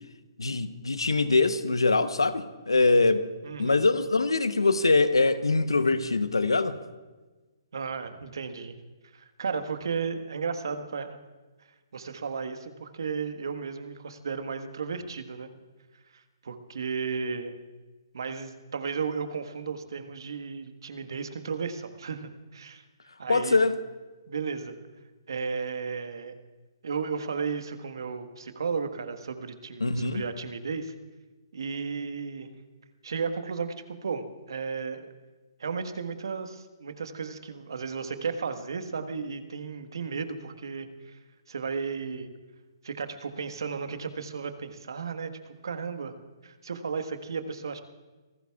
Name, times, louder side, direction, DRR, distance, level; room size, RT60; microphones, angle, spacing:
voice 1, 0.4-3.3 3.6-6.8 23.3-23.8 29.8-30.2, left 3 dB, 85° left, 1.0 m, -23 dB
voice 2, 3.4-3.8 7.7-8.7 9.1-11.2 11.9-15.5 16.1-17.6 18.1-22.8 23.2-23.6 24.3-24.8 25.3-26.3 26.8-30.9 31.5-32.5 33.0-35.1 35.6-41.2 41.5-42.3 42.8-46.1 46.4-47.8, right 5 dB, 65° right, 1.4 m, -34 dB
27.0 x 18.5 x 2.4 m
figure-of-eight pair, 135°, 2 cm